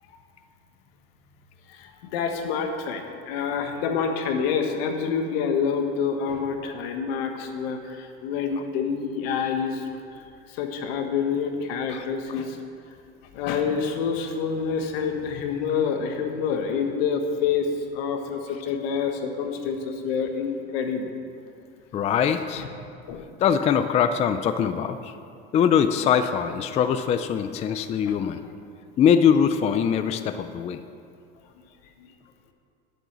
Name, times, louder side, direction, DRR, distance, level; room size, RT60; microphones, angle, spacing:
voice 1, 1.7-9.9 10.5-12.6 13.3-17.7 17.9-21.1 22.5-22.7 23.1-23.3 28.0-28.1, left 6 dB, 80° left, 5 dB, 1.4 m, -27 dB
voice 2, 21.9-22.6 23.4-25.1 25.5-28.4 29.0-30.8, left 8 dB, 25° left, 10 dB, 0.3 m, -22 dB
11.0 x 7.9 x 6.1 m, 2.4 s
supercardioid pair, 140°, 30 cm